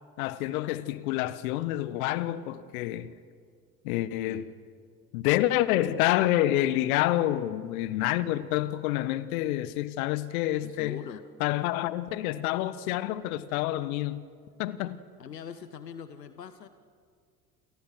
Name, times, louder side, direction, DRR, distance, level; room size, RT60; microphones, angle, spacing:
voice 1, 0.2-3.1 3.8-4.5 5.1-11.0 11.4-14.3 14.6-15.0, left 14 dB, 60° left, 1.5 m, -28 dB
voice 2, 10.6-11.3 15.2-16.7, left 7 dB, 80° left, 1.2 m, -42 dB
29.5 x 28.5 x 6.4 m
figure-of-eight pair, 70°, 48 cm